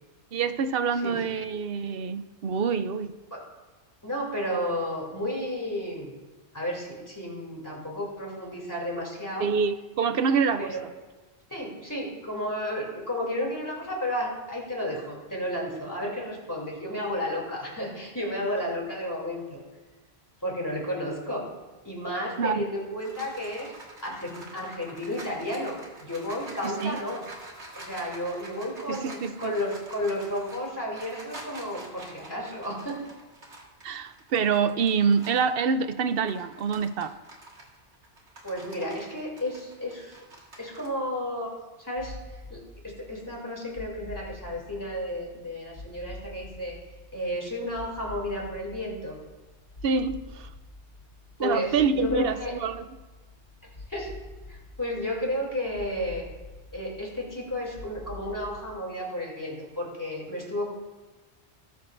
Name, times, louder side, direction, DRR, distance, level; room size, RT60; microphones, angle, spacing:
voice 1, 0.3-3.1 9.4-10.7 22.4-22.6 26.6-27.0 28.9-29.5 33.8-37.1 49.8-50.5 51.4-52.9, right 5 dB, 60° right, 11 dB, 0.8 m, -26 dB
voice 2, 4.0-6.1 6.5-9.5 10.6-10.8 11.5-19.6 20.4-21.5 21.8-23.7 24.0-27.2 27.7-33.0 38.4-40.1 40.6-41.5 41.8-42.2 42.5-46.8 47.1-49.2 51.4-52.5 53.9-54.1 54.5-56.2 56.7-60.7, left 1 dB, 15° left, -3 dB, 3.0 m, -32 dB
sound 1, 22.7-35.5 36.0-40.9, right 1 dB, 85° right, 2.0 m, -47 dB
sound 2, 42.0-58.7, left 2 dB, 55° left, 1.6 m, -46 dB
18.0 x 8.0 x 2.6 m, 1.2 s
omnidirectional pair, 1.2 m